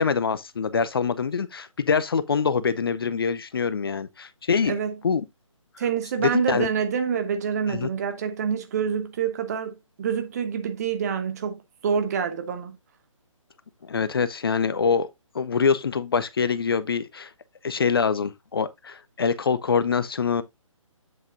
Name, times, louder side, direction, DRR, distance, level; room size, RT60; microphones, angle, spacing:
voice 1, 0.0-4.8 5.0-5.2 6.2-6.7 7.7-7.9 13.8-15.1 15.3-17.3 17.6-20.4, left 5 dB, 45° left, 0.5 m, -24 dB
voice 2, 4.6-4.9 5.8-12.8, right 7 dB, 30° right, 1.1 m, -27 dB
8.0 x 7.1 x 2.5 m
figure-of-eight pair, 145°, 17 cm